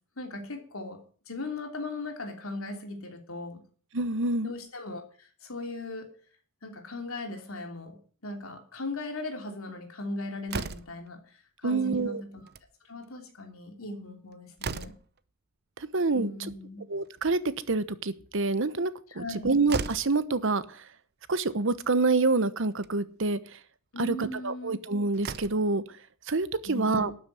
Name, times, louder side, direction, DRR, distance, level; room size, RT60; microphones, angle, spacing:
voice 1, 0.2-3.6 4.4-6.1 6.6-12.5 12.8-14.9 16.1-16.8 19.1-19.5 23.9-24.7 26.6-27.1, left 2 dB, 85° left, 4 dB, 3.1 m, -38 dB
voice 2, 3.9-4.5 11.6-12.2 15.8-16.3 16.9-17.4 17.7-20.8 21.3-23.4 24.0-25.8 26.3-27.1, right 3 dB, 65° right, 14 dB, 1.0 m, -27 dB
Slam, 10.5-11.1 12.3-12.7 13.0-13.1 13.4-13.5 14.1-15.2 16.9-17.6 19.2-19.3 19.7-20.2 21.3-21.4 21.8-21.9 22.7-23.0 24.7-24.8 25.1-25.7, right 4 dB, 50° right, 0.7 m, -37 dB
12.5 x 6.7 x 9.5 m, 0.44 s
head